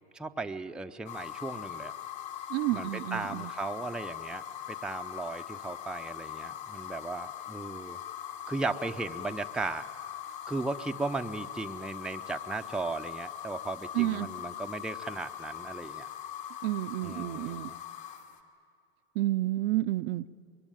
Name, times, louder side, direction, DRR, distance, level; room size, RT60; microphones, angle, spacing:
voice 1, 0.1-1.9 2.7-8.0 8.5-9.9 10.5-16.1 17.0-17.8, right 3 dB, ahead, 6 dB, 0.6 m, -36 dB
sound 1, 1.1-18.4, left 10 dB, 60° left, 2.6 m, -41 dB
voice 2, 2.5-3.5 13.9-14.3 16.6-17.7 19.2-20.3, right 16 dB, 60° right, 11 dB, 0.7 m, -30 dB
25.0 x 22.0 x 9.1 m, 2.4 s
hypercardioid pair, 105°, 33 cm